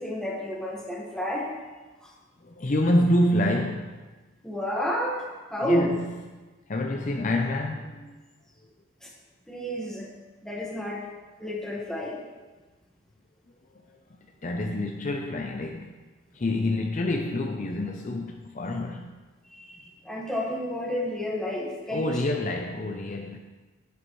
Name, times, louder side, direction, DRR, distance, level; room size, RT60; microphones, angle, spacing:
voice 1, 0.0-1.5 2.0-2.1 4.4-5.9 9.0-9.1 9.5-10.1 10.4-11.1 11.4-12.2 19.5-22.2, equal, 5° left, -3 dB, 1.5 m, -30 dB
voice 2, 2.4-4.1 5.6-6.0 6.7-8.1 14.4-15.9 16.3-19.1 21.9-23.4, left 1 dB, 40° left, 2 dB, 0.5 m, -27 dB
9.7 x 9.5 x 3.2 m, 1.3 s
head